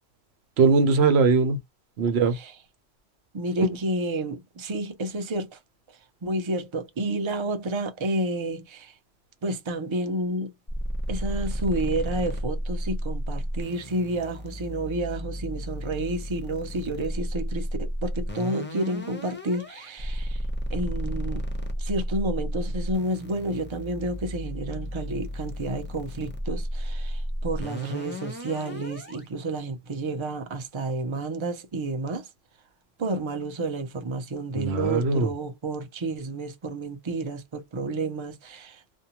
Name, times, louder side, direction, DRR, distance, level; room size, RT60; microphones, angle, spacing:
voice 1, 0.6-1.6 2.0-2.4 3.6-3.7 34.5-35.3, right 4 dB, 65° right, 0.9 m, -20 dB
voice 2, 3.3-5.6 6.2-8.9 9.4-10.5 11.1-20.4 20.7-21.4 21.8-32.3 33.0-38.8, right 2 dB, 30° right, 0.6 m, -30 dB
sound 1, 10.7-29.3, equal, 15° left, 0.5 m, -33 dB
2.6 x 2.2 x 2.9 m
omnidirectional pair, 1.2 m